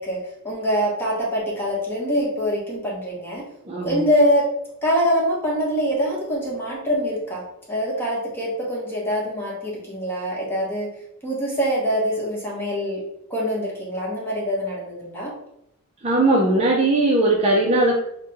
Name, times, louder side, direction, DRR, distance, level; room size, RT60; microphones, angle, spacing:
voice 1, 0.0-3.5 3.8-4.5 4.8-7.4 7.7-10.9 11.2-13.0 13.3-15.3, equal, 10° left, -5 dB, 1.1 m, -24 dB
voice 2, 3.6-4.0 16.0-18.0, right 2 dB, 30° right, -2 dB, 0.5 m, -19 dB
3.4 x 2.2 x 4.1 m, 0.77 s
head